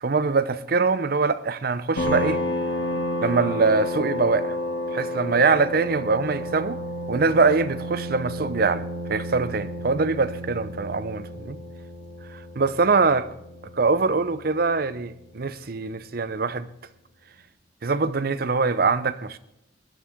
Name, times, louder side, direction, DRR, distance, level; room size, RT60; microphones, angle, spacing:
voice 1, 0.0-2.4 3.2-4.6 4.9-6.8 7.1-11.6 12.3-13.3 13.8-16.7 17.8-19.4, right 4 dB, 55° right, 0.7 m, -23 dB
sound 1, 2.0-15.2, left 1 dB, 75° left, 2.6 m, -31 dB
20.0 x 11.5 x 3.6 m
head